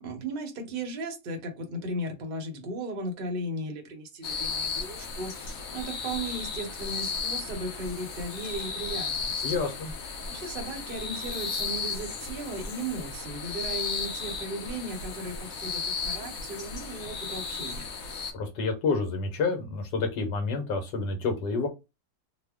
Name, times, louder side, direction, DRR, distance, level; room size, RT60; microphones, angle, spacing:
voice 1, 0.0-9.4 10.3-17.9, right 1 dB, 45° right, 3 dB, 0.7 m, -36 dB
sound 1, 4.2-18.3, left 5 dB, 65° left, 1.0 m, -34 dB
voice 2, 9.4-9.9 18.3-21.7, left 4 dB, 80° left, 4 dB, 1.5 m, -29 dB
3.2 x 2.1 x 3.4 m, 0.25 s
omnidirectional pair, 1.9 m